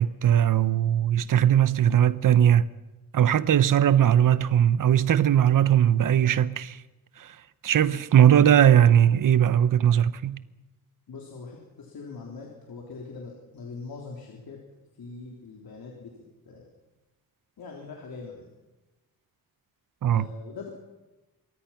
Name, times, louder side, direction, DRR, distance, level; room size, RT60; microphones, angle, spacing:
voice 1, 0.0-2.7 3.1-6.8 7.2-7.4 7.6-10.4 20.0-20.3, right 10 dB, 60° right, 0.9 m, -19 dB
voice 2, 11.1-14.6 15.0-16.1 16.5-16.7 17.6-18.5 20.1-20.7, left 4 dB, 75° left, 3.8 m, -42 dB
26.5 x 22.5 x 5.9 m
wide cardioid pair, 160°, 37 cm